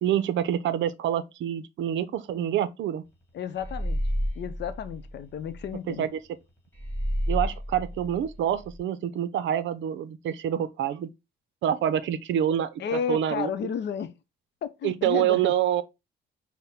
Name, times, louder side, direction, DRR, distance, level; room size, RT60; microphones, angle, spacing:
voice 1, 0.0-3.0 5.9-6.2 7.3-11.1 11.6-13.5 14.8-15.8, right 10 dB, 70° right, 0.5 m, -27 dB
voice 2, 3.3-4.0 4.4-6.1 12.8-14.1 14.6-15.5, left 8 dB, 60° left, 0.6 m, -32 dB
sound 1, 3.6-5.7 6.7-8.8, equal, 10° left, 2.0 m, -31 dB
5.6 x 2.1 x 3.5 m
cardioid pair, 90°, 20 cm